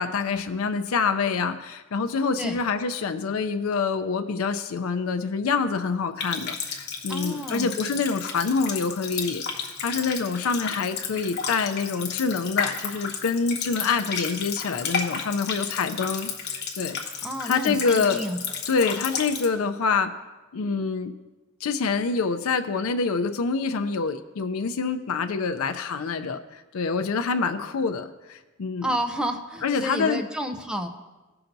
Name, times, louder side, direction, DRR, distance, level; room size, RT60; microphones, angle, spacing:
voice 1, 0.0-17.0 17.4-18.2 18.7-20.1 20.5-21.1 21.6-29.0 29.6-30.2, left 5 dB, 85° left, 9 dB, 0.5 m, -26 dB
Water tap faucet, 6.2-19.5, left 6 dB, 55° left, 1.1 m, -32 dB
voice 2, 7.1-7.7 17.2-18.4 28.8-30.9, equal, 5° right, 5 dB, 0.6 m, -30 dB
16.5 x 5.8 x 2.6 m, 1.2 s
head